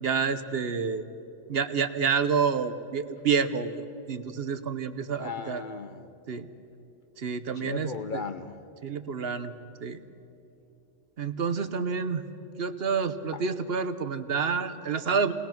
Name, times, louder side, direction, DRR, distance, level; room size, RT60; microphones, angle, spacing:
voice 1, 0.0-1.1 1.5-3.8 4.1-5.6 6.3-6.5 7.2-7.9 8.8-9.5 9.8-10.0 11.2-12.2 12.6-15.3, right 6 dB, 60° right, 11 dB, 1.1 m, -28 dB
voice 2, 5.2-6.1 7.5-8.6 13.3-13.4, left 5 dB, 50° left, 10 dB, 0.7 m, -36 dB
29.0 x 20.0 x 5.9 m, 2.8 s
omnidirectional pair, 1.2 m